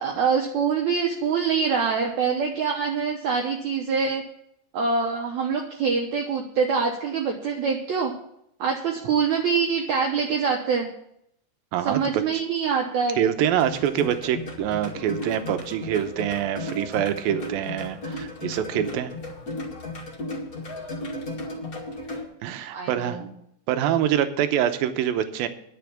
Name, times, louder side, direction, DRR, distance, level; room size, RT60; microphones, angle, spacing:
voice 1, 0.0-4.2 4.7-8.1 8.6-10.9 11.8-13.2 22.7-23.3, right 5 dB, 65° right, 0 dB, 2.1 m, -25 dB
voice 2, 11.7-12.2 13.2-19.1 22.4-23.2 23.7-25.5, right 10 dB, 80° right, 9 dB, 2.6 m, -25 dB
sound 1, 13.5-22.2, left 2 dB, 30° left, 1.8 m, -35 dB
10.5 x 7.1 x 8.5 m, 0.73 s
omnidirectional pair, 4.3 m